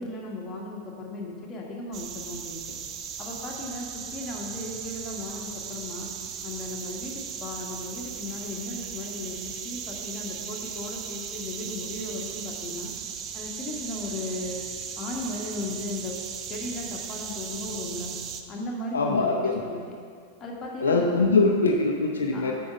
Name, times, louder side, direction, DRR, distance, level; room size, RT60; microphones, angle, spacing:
voice 1, 0.0-2.6 3.2-6.1 6.4-12.9 13.3-14.6 15.0-16.2 16.5-18.1 18.5-19.8 20.4-21.1 22.3-22.5, left 2 dB, 20° left, -2 dB, 1.5 m, -36 dB
sound 1, 1.9-18.4, right 7 dB, 35° right, 0.5 m, -37 dB
voice 2, 18.9-19.6 20.8-22.5, left 3 dB, 70° left, 1 dB, 0.5 m, -22 dB
8.5 x 4.7 x 5.1 m, 2.1 s
figure-of-eight pair, 90°, 0 cm